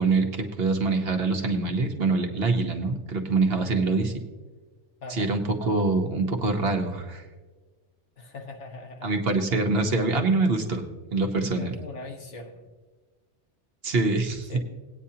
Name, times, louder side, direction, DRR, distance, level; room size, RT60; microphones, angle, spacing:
voice 1, 0.0-4.1 5.1-7.2 9.0-10.8 11.1-11.7 13.8-14.5, right 3 dB, 60° right, 4 dB, 1.3 m, -25 dB
voice 2, 8.2-9.1 11.5-12.7 14.5-14.6, left 2 dB, 80° left, 2 dB, 1.6 m, -40 dB
18.0 x 9.2 x 2.8 m, 1.3 s
omnidirectional pair, 1.2 m